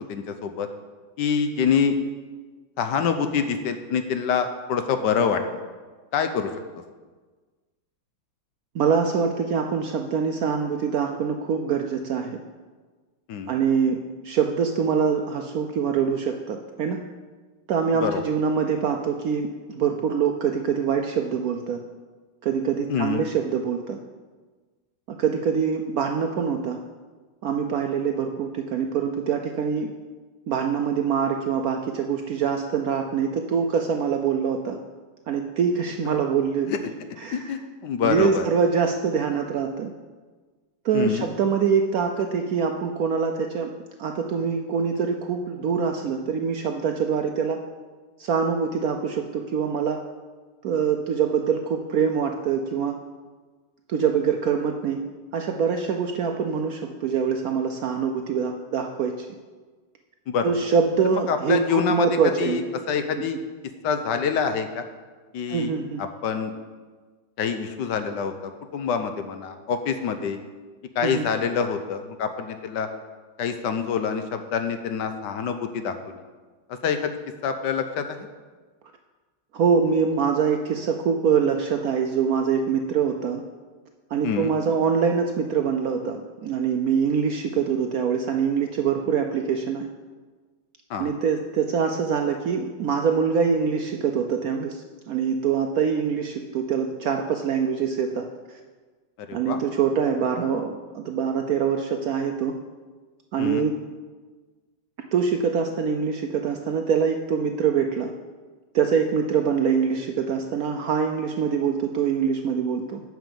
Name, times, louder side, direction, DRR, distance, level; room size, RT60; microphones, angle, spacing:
voice 1, 0.1-0.7 1.2-2.0 2.8-5.4 6.1-6.5 13.3-13.6 18.0-18.2 22.9-23.2 36.0-36.1 36.7-36.8 37.3-38.5 40.9-41.3 60.3-60.5 61.1-62.6 62.9-63.4 63.8-64.8 65.3-65.7 66.0-66.5 67.4-70.4 71.0-72.9 73.4-76.1 76.7-78.2 84.2-84.5 90.9-91.1 99.3-99.6 103.4-103.6, left 6 dB, 70° left, 8 dB, 1.3 m, -26 dB
voice 2, 8.7-12.4 13.5-14.0 14.2-17.0 17.7-21.8 22.4-24.0 25.2-26.8 27.4-29.9 30.5-34.8 35.3-36.7 37.2-37.5 38.0-39.9 40.8-43.7 44.0-47.6 48.2-50.0 50.6-53.0 53.9-55.0 55.3-59.3 60.4-62.6 65.5-66.0 71.0-71.2 79.5-83.4 84.1-89.9 91.0-98.3 99.3-102.6 103.3-103.7 105.1-108.1 108.7-113.0, right 6 dB, 70° right, 4 dB, 0.8 m, -24 dB
9.2 x 6.2 x 6.8 m, 1.4 s
omnidirectional pair, 2.1 m